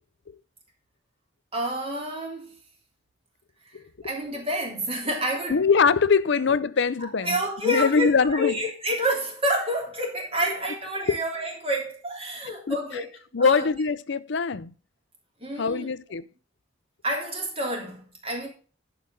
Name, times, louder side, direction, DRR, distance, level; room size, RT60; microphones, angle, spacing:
voice 1, 1.5-2.5 3.6-5.6 7.0-13.1 13.4-13.7 15.4-15.9 17.0-18.5, right 1 dB, 30° right, 3.3 m, -29 dB
voice 2, 5.5-7.4 7.6-8.6 11.1-11.2 12.7-12.8 13.3-14.7 15.6-16.3, left 5 dB, 60° left, 0.5 m, -22 dB
11.0 x 5.2 x 5.3 m
head